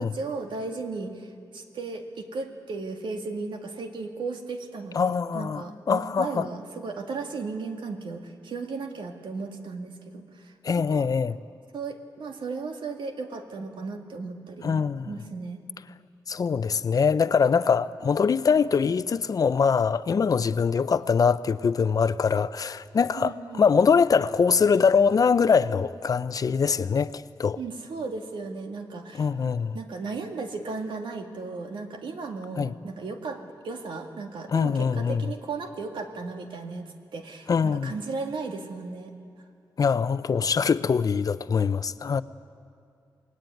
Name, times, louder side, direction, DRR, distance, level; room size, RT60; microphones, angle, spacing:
voice 1, 0.0-11.0 11.7-15.6 23.1-23.7 27.6-29.3 29.7-39.1, right 4 dB, 85° right, 2.2 m, -35 dB
voice 2, 4.9-6.5 10.6-11.4 14.6-15.1 16.3-27.6 29.1-29.8 32.6-32.7 34.5-35.3 37.5-37.9 39.8-42.2, left 6 dB, 50° left, 0.6 m, -23 dB
28.0 x 20.0 x 9.3 m
wide cardioid pair, 145°, 8 cm